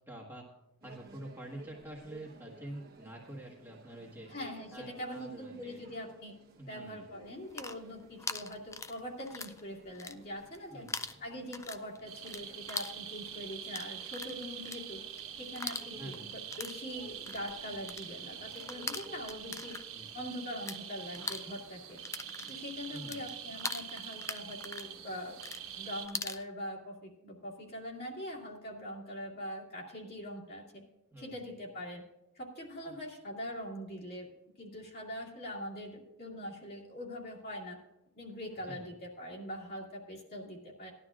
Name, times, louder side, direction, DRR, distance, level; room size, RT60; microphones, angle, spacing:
voice 1, 0.1-0.4 0.8-4.3 4.7-5.8 6.6-7.1 10.7-10.9 15.9-16.3 19.9-20.1 22.9-23.3 31.1-31.3 32.8-32.9 38.6-38.8, right 1 dB, 10° right, -4 dB, 1.5 m, -47 dB
sound 1, 0.8-20.1, right 2 dB, 50° right, 1.2 m, -57 dB
voice 2, 4.3-6.3 6.7-10.8 11.2-15.0 15.4-19.8 20.1-22.0 22.5-25.4 25.8-30.8 31.2-32.0 32.4-34.3 34.6-37.8 38.2-40.9, equal, 50° left, -3 dB, 2.4 m, -43 dB
sound 2, 7.3-9.6 9.9-10.6 10.9-20.8 21.1-26.4, left 4 dB, 15° left, 0.3 m, -42 dB
sound 3, 12.1-26.1, right 9 dB, 85° right, 1.4 m, -45 dB
18.0 x 11.5 x 2.5 m, 0.91 s
head